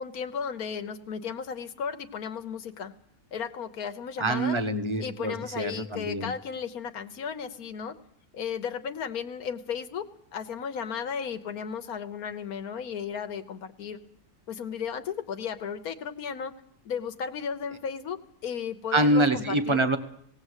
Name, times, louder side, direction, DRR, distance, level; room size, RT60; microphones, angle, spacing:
voice 1, 0.0-2.9 3.3-4.6 5.0-7.9 8.3-10.1 10.3-14.0 14.5-16.5 16.8-18.2 18.4-19.8, left 7 dB, 90° left, 8 dB, 1.5 m, -34 dB
voice 2, 4.2-6.3 18.9-20.0, right 1 dB, 20° right, 8 dB, 1.3 m, -25 dB
18.5 x 17.5 x 8.1 m, 0.68 s
omnidirectional pair, 1.5 m